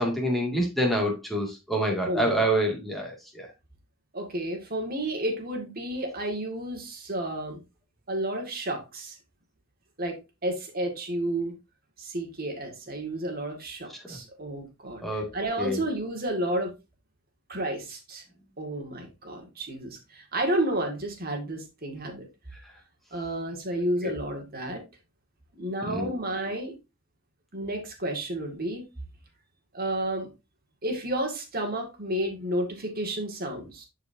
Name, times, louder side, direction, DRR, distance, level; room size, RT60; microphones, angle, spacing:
voice 1, 0.0-3.5 14.1-14.2 15.0-15.3 15.6-15.8 24.0-24.1 25.9-26.2, right 1 dB, ahead, 2.2 m, -27 dB
voice 2, 2.1-2.4 4.1-7.6 8.1-9.2 10.0-11.5 12.0-16.8 17.5-18.2 18.6-22.3 23.1-24.8 25.6-26.8 27.5-28.9 29.7-30.3 30.8-33.9, right 1 dB, 45° right, 2.1 m, -31 dB
10.5 x 4.9 x 2.7 m
head